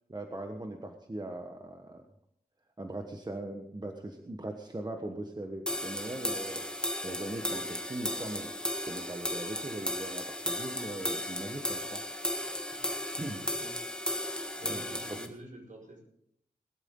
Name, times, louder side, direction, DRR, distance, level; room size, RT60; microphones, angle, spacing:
voice 1, 0.1-2.0 2.8-6.7 7.0-8.5 8.9-12.0 13.2-13.4 14.6-15.2, right 1 dB, 25° right, 4 dB, 1.3 m, -40 dB
sound 1, 5.7-15.3, left 1 dB, 5° left, 1.7 m, -35 dB
voice 2, 13.4-13.7 14.6-16.0, right 1 dB, 55° right, 1 dB, 5.1 m, -48 dB
20.0 x 12.5 x 3.8 m, 0.71 s
wide cardioid pair, 90°, 15 cm